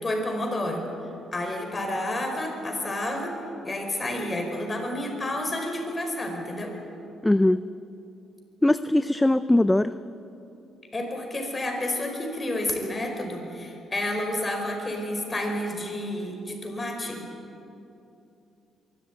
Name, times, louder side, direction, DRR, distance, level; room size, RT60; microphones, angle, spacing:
voice 1, 0.0-0.8 1.3-3.3 3.6-6.7 10.9-17.2, left 1 dB, 25° left, 3 dB, 4.8 m, -30 dB
voice 2, 7.2-7.6 8.6-9.9, left 1 dB, 10° left, 12 dB, 0.5 m, -20 dB
23.5 x 13.5 x 9.1 m, 2.8 s
cardioid pair, 90°, 0 cm